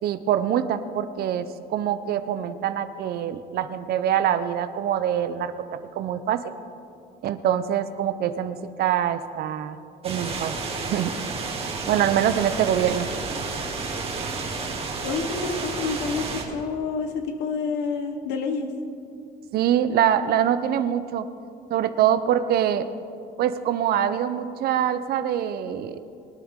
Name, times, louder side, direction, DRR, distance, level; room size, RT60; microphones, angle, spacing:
voice 1, 0.0-6.4 7.2-9.8 10.0-10.5 10.8-11.1 11.9-13.1 19.5-21.3 21.7-22.9 23.4-26.0, right 10 dB, 65° right, 11 dB, 0.7 m, -24 dB
sound 1, 10.0-16.4, right 4 dB, 35° right, 2.1 m, -31 dB
voice 2, 15.0-18.7, left 5 dB, 90° left, 6 dB, 1.1 m, -28 dB
23.0 x 9.3 x 3.7 m, 2.5 s
cardioid pair, 110°, 17 cm